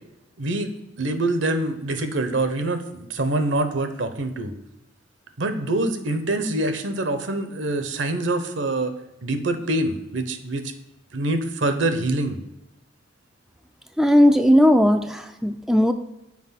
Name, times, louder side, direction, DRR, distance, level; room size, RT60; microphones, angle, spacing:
voice 1, 0.4-0.7 1.0-4.5 5.4-8.9 9.2-10.7 11.1-12.4, right 2 dB, 70° right, 8 dB, 0.8 m, -25 dB
voice 2, 14.0-15.9, equal, ahead, 6 dB, 0.3 m, -17 dB
6.0 x 4.8 x 5.8 m, 0.92 s
head